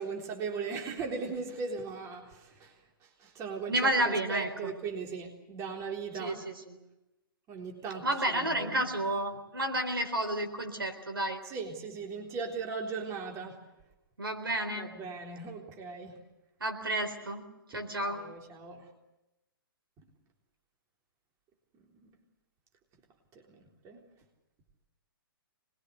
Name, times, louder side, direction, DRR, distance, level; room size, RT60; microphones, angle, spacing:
voice 1, 0.0-2.8 3.0-6.4 7.5-8.8 11.4-13.6 14.7-16.2 18.0-18.9 21.8-22.1 23.3-24.0, right 4 dB, 25° right, 1 dB, 3.8 m, -38 dB
voice 2, 3.7-4.7 6.2-6.8 8.0-11.4 14.2-14.9 16.6-17.4 17.7-18.2, right 1 dB, 75° right, 7 dB, 4.0 m, -31 dB
25.0 x 21.5 x 8.3 m, 0.96 s
figure-of-eight pair, 120°, 12 cm